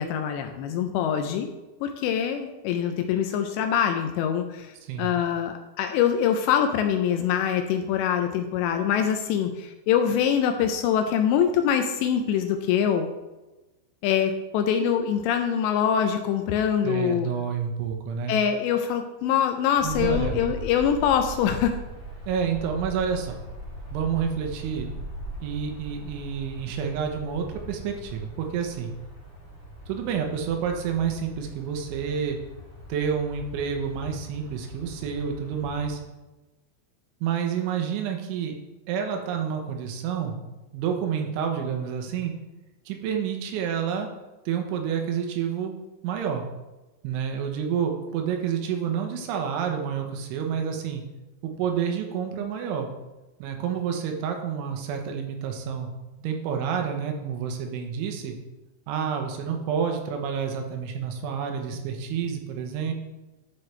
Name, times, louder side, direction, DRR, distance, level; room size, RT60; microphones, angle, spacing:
voice 1, 0.0-1.5 1.8-4.7 5.0-13.1 14.0-17.3 18.3-21.7, left 8 dB, 80° left, 6 dB, 2.6 m, -24 dB
voice 2, 4.8-5.1 16.8-18.4 19.8-20.4 22.3-23.4 23.9-24.9 25.4-28.9 29.9-32.4 32.9-36.0 37.2-38.6 38.9-40.5 40.7-42.3 42.9-44.1 44.5-45.7 46.0-46.4 47.0-51.0 51.4-52.9 53.4-55.9 56.2-58.3 58.9-62.9, right 7 dB, 80° right, 3 dB, 3.4 m, -29 dB
sound 1, 19.7-36.0, equal, 10° right, 0.8 m, -40 dB
11.5 x 5.8 x 3.3 m, 1.1 s
omnidirectional pair, 5.4 m